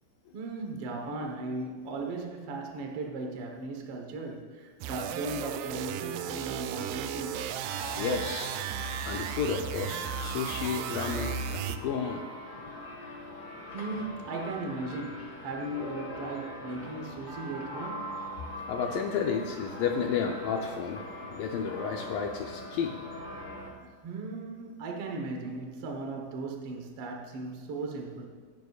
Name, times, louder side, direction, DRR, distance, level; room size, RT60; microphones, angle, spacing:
voice 1, 0.3-7.4 13.7-18.1 23.8-28.3, right 2 dB, 60° right, 1 dB, 1.5 m, -37 dB
sound 1, 4.8-11.8, right 9 dB, 85° right, 1.9 m, -35 dB
sound 2, 7.3-23.7, left 1 dB, 25° left, 2.0 m, -42 dB
voice 2, 8.0-8.5 8.8-12.2 18.7-21.0 21.3-23.0, left 6 dB, 75° left, 2 dB, 2.3 m, -32 dB
24.5 x 11.0 x 2.4 m, 1.5 s
omnidirectional pair, 4.3 m